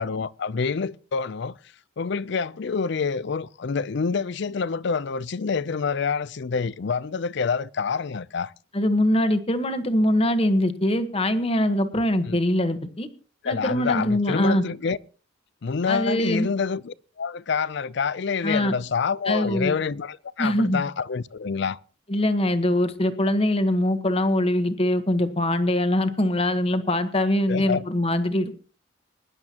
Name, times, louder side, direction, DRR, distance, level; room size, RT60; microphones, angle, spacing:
voice 1, 0.0-1.5 2.0-8.5 12.3-12.4 13.4-15.0 15.6-21.8 27.5-27.8, left 5 dB, 60° left, 0.5 m, -27 dB
voice 2, 8.7-13.1 13.4-14.6 15.9-16.5 18.4-18.7 19.3-19.7 20.4-20.8 22.1-28.5, left 1 dB, 30° left, 1.2 m, -23 dB
22.0 x 11.0 x 2.9 m
head